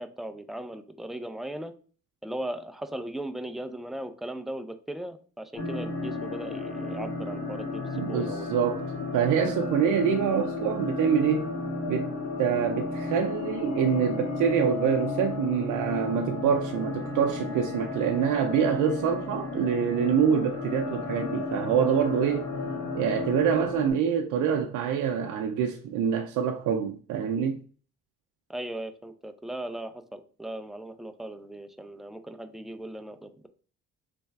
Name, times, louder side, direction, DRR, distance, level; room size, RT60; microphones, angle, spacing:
voice 1, 0.0-1.7 2.2-8.7 28.5-33.5, right 1 dB, ahead, 0.5 m, -38 dB
sound 1, 5.6-23.9, left 3 dB, 55° left, 2.0 m, -33 dB
voice 2, 7.9-11.5 11.9-12.1 12.4-22.5 22.9-27.6, right 7 dB, 85° right, 0.5 m, -26 dB
3.4 x 3.2 x 4.5 m
cardioid pair, 90°, 30 cm